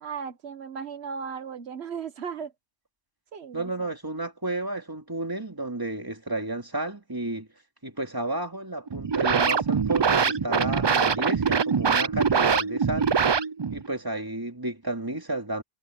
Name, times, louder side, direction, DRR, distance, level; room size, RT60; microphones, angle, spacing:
voice 1, 0.0-2.5 3.3-3.9, right 6 dB, 90° right, 1.3 m, -36 dB
voice 2, 3.5-7.5 7.8-13.1 13.7-15.6, right 2 dB, 20° right, 2.6 m, -32 dB
sound 1, 8.9-13.9, right 6 dB, 40° right, 0.4 m, -23 dB
omnidirectional pair, 1.1 m